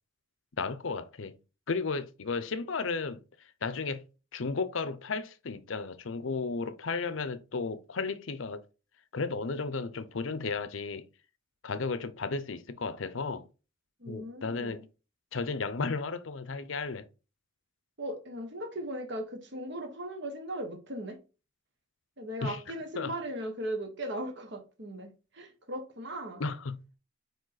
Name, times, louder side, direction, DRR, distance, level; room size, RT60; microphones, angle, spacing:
voice 1, 0.6-1.4 1.7-3.2 3.6-4.0 4.3-8.6 9.1-11.1 11.6-13.5 14.1-14.8 15.3-17.1 22.4-23.1 26.4-26.8, left 4 dB, 70° left, 0.7 m, -34 dB
voice 2, 14.0-14.8 18.0-21.2 22.2-26.4, right 1 dB, 55° right, 1.5 m, -38 dB
5.2 x 4.6 x 4.0 m
head